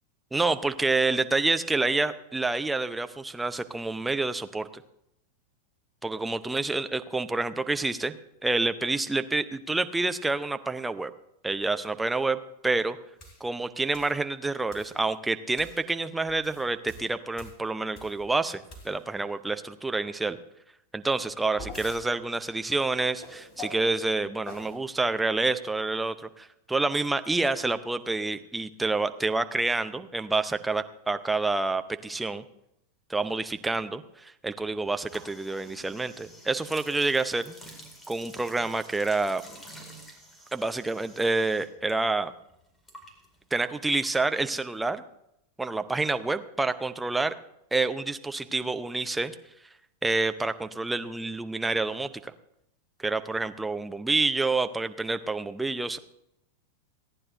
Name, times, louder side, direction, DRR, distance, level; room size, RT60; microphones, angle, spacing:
voice 1, 0.3-4.8 6.0-8.1 8.4-11.1 11.4-12.4 12.6-13.0 13.4-20.4 20.9-32.4 33.1-37.5 38.1-39.4 40.5-42.3 43.5-45.0 45.6-47.3 47.7-49.3 50.0-52.3 53.0-56.0, right 3 dB, 5° right, 9 dB, 0.7 m, -28 dB
sound 1, 13.2-13.4 13.9-14.2 14.7-15.0 15.6-15.8 16.3-18.3 18.7-19.2 21.1-22.0 23.2-23.9 24.4-24.8, left 2 dB, 35° left, 3.3 m, -44 dB
sound 2, 35.0-41.9 42.2-44.6, equal, 10° left, 2.3 m, -50 dB
29.5 x 9.9 x 2.6 m, 0.81 s
figure-of-eight pair, 90°, 0 cm